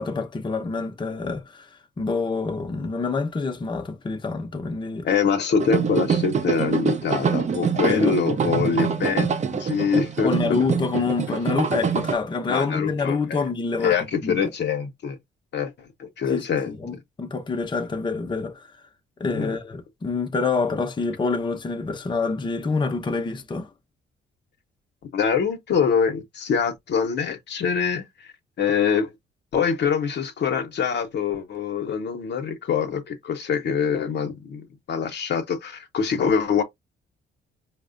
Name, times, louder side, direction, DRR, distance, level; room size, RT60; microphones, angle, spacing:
voice 1, 0.0-1.7 2.0-5.1 7.8-8.2 8.7-8.8 10.2-13.9 14.2-14.4 16.3-18.7 19.2-23.7, left 4 dB, 25° left, 0.6 m, -27 dB
voice 2, 5.0-10.6 12.5-13.4 13.8-15.2 15.5-15.7 16.0-16.8 19.3-19.6 25.1-28.1 28.6-29.1 29.5-36.6, left 6 dB, 60° left, 0.8 m, -24 dB
sound 1, 5.6-12.1, right 6 dB, 35° right, 0.6 m, -25 dB
4.6 x 2.1 x 2.5 m
cardioid pair, 90°, 20 cm